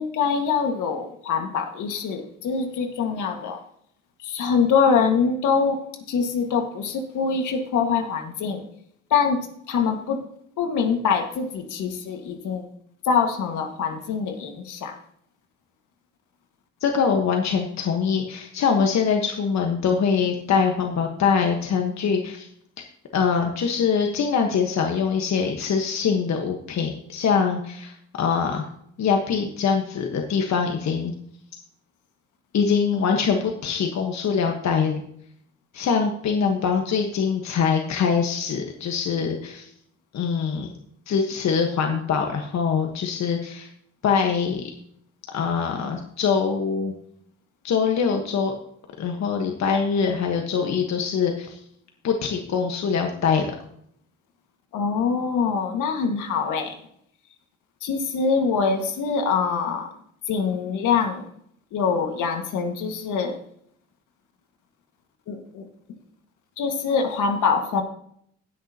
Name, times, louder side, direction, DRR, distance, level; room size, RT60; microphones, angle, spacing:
voice 1, 0.0-3.6 4.2-5.8 6.1-8.6 9.1-9.4 9.7-10.2 10.6-12.6 13.0-15.0 54.7-56.8 57.8-59.9 60.3-61.3 61.7-63.4 65.3-65.7 66.6-67.8, left 5 dB, 80° left, 4 dB, 1.8 m, -24 dB
voice 2, 16.8-22.5 23.1-28.6 29.0-31.1 32.5-35.0 35.7-39.7 40.1-40.7 41.1-43.7 44.0-44.6 45.3-46.9 47.6-48.5 49.0-51.6 52.0-53.5, left 6 dB, 65° left, 3 dB, 1.4 m, -23 dB
19.5 x 6.5 x 2.9 m, 0.68 s
cardioid pair, 90°, 30 cm